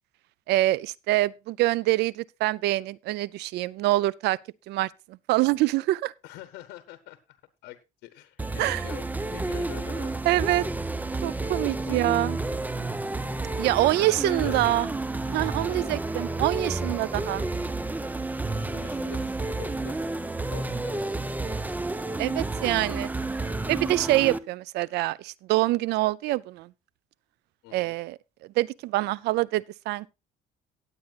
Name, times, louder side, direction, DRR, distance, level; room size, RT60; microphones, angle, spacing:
voice 1, 0.5-4.4 4.7-4.9 5.3-6.1 8.6-8.8 10.3-10.7 11.2-12.4 13.6-14.9 15.3-17.5 22.2-23.1 23.7-26.7 27.7-28.2 28.6-30.1, right 17 dB, 80° right, 0.5 m, -25 dB
voice 2, 6.2-7.4 7.6-10.1 11.8-12.0 13.8-14.6 15.7-16.0 18.7-20.0 20.5-21.6 27.6-27.9, left 15 dB, 85° left, 0.9 m, -44 dB
sound 1, 8.4-24.4, right 2 dB, 10° right, 0.7 m, -30 dB
18.5 x 8.3 x 2.4 m
cardioid pair, 110°, 17 cm